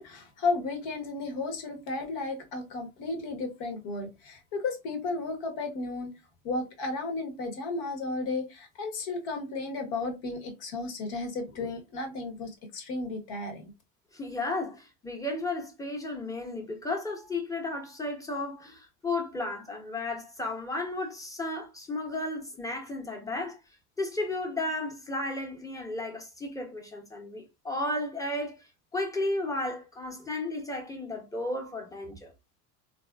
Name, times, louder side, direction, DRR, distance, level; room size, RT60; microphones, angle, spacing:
voice 1, 0.0-6.1 6.4-13.6, left 3 dB, 55° left, 1.2 m, -33 dB
voice 2, 14.1-23.6 24.0-28.6 28.9-32.3, left 2 dB, 5° left, 1.1 m, -33 dB
4.0 x 2.6 x 2.3 m
hypercardioid pair, 75°, 45 cm